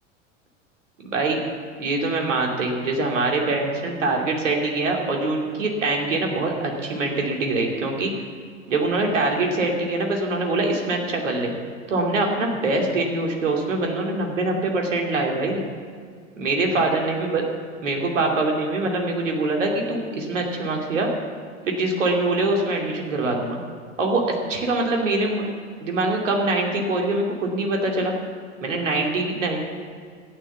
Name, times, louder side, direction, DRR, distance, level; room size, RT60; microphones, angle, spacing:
voice 1, 1.0-1.4 1.8-8.1 8.7-11.5 11.9-15.7 16.4-17.4 17.8-21.1 21.7-23.6 24.0-25.4 25.8-28.1 28.6-29.6, right 2 dB, 70° right, 1 dB, 2.7 m, -24 dB
14.0 x 9.8 x 7.1 m, 2.1 s
figure-of-eight pair, 80°, 38 cm